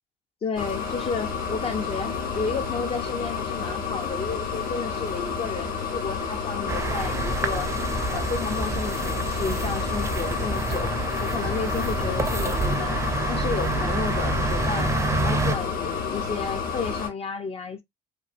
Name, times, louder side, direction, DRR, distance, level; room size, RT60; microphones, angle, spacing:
voice 1, 0.4-7.7 8.1-13.0 13.3-14.9 15.2-17.8, left 5 dB, 35° left, 0.4 m, -32 dB
sound 1, 0.6-17.1, left 6 dB, 60° left, 1.2 m, -30 dB
sound 2, 6.7-15.6, right 3 dB, 15° right, 0.5 m, -28 dB
2.7 x 2.5 x 2.4 m
cardioid pair, 110°, 17 cm